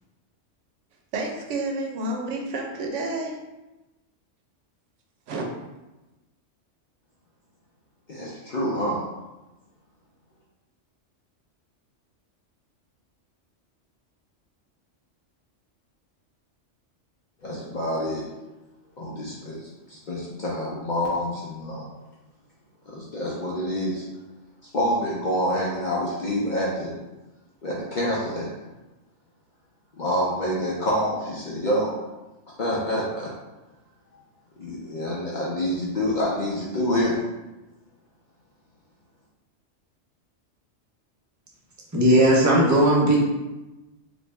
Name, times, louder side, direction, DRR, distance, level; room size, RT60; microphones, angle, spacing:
voice 1, 1.1-3.4 5.3-5.4, right 2 dB, 75° right, 1 dB, 0.9 m, -29 dB
voice 2, 8.1-9.0 17.4-18.2 19.0-19.6 19.9-21.8 22.9-24.0 24.7-26.9 27.6-28.5 30.0-31.9 32.6-33.3 34.6-37.1, equal, 55° left, -5 dB, 0.5 m, -27 dB
voice 3, 41.9-43.2, right 1 dB, 25° right, -3 dB, 0.4 m, -17 dB
3.1 x 2.5 x 3.3 m, 1.1 s
omnidirectional pair, 1.3 m